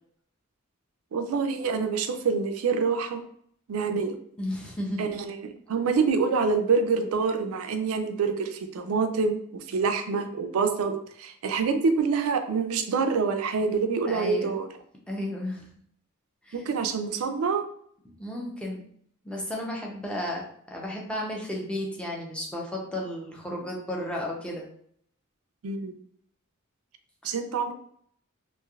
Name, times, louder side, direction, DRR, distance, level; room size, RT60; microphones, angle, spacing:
voice 1, 1.1-3.2 3.7-4.1 5.0-14.7 16.5-17.6 25.6-25.9 27.2-27.7, right 5 dB, 75° right, 7 dB, 0.4 m, -26 dB
voice 2, 4.4-5.1 14.1-14.5 15.1-15.7 16.4-16.6 18.0-18.8 19.2-24.7 27.2-27.3, left 1 dB, 5° left, -2 dB, 0.5 m, -33 dB
3.1 x 2.5 x 2.3 m, 0.64 s
head